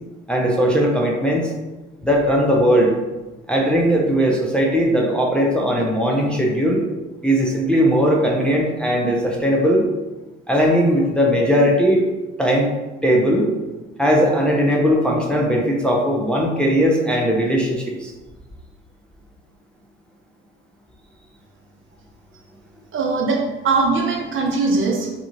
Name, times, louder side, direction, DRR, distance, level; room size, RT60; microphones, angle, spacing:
voice 1, 0.3-1.5 2.0-3.0 3.5-6.8 7.2-9.8 10.5-12.0 12.4-12.7 13.0-13.5 14.0-18.1, equal, 5° left, -2 dB, 0.5 m, -18 dB
voice 2, 22.9-25.1, right 3 dB, 40° right, 0 dB, 0.6 m, -20 dB
2.7 x 2.3 x 3.0 m, 1.1 s
hypercardioid pair, 50°, 31 cm